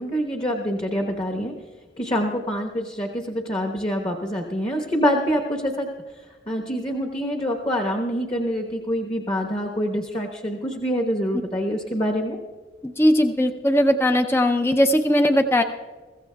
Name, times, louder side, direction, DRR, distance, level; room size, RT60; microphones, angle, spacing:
voice 1, 0.0-1.5 2.0-5.9 6.5-12.4, equal, 30° left, 2 dB, 1.1 m, -25 dB
voice 2, 12.8-15.6, equal, 10° left, 6 dB, 0.5 m, -19 dB
22.5 x 15.5 x 2.3 m, 1.4 s
head